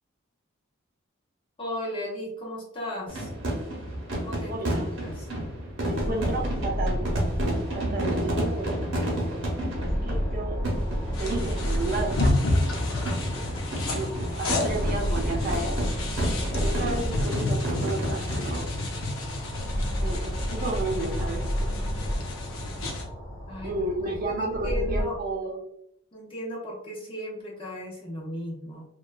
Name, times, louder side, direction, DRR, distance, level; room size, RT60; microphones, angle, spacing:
voice 1, 1.6-3.3 4.2-5.3 23.5-23.7 24.0-25.2 26.1-28.9, equal, 25° left, -4 dB, 0.8 m, -36 dB
sound 1, 3.1-18.6, right 1 dB, 60° right, 0.8 m, -31 dB
voice 2, 4.5-4.9 5.8-7.1 7.7-8.7 10.0-10.6 11.2-12.4 13.3-13.4 13.9-14.1 14.4-15.8 16.6-18.7 20.0-21.7 23.6-25.6, right 2 dB, 40° right, 1 dB, 0.4 m, -32 dB
sound 2, 6.0-25.0, equal, 55° left, 1.0 m, -32 dB
sound 3, 11.1-23.0, left 2 dB, 85° left, 0.6 m, -31 dB
3.0 x 2.2 x 2.2 m, 0.74 s
head